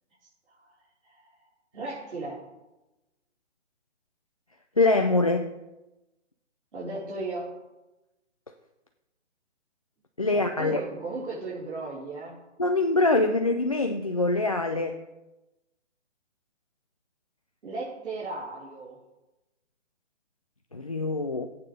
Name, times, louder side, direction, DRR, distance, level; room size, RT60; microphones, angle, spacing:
voice 1, 1.7-2.4 6.7-7.5 10.3-12.4 17.6-19.0, right 3 dB, 65° right, -9 dB, 4.6 m, -36 dB
voice 2, 4.8-5.5 10.2-10.8 12.6-15.0 20.7-21.5, left 2 dB, 30° left, 5 dB, 0.4 m, -24 dB
18.0 x 8.7 x 3.4 m, 1.0 s
hypercardioid pair, 165°, 36 cm